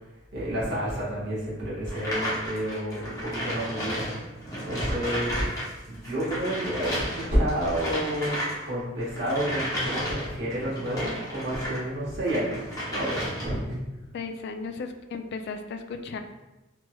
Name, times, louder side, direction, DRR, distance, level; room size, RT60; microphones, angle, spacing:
voice 1, 0.3-5.5 5.9-8.4 8.6-13.8, equal, 60° right, -7 dB, 1.4 m, -30 dB
sound 1, 1.9-11.8 12.2-13.7, equal, 20° left, 0.9 m, -33 dB
voice 2, 14.1-16.2, left 4 dB, 55° left, 6 dB, 0.3 m, -35 dB
4.1 x 2.9 x 2.2 m, 1.0 s
head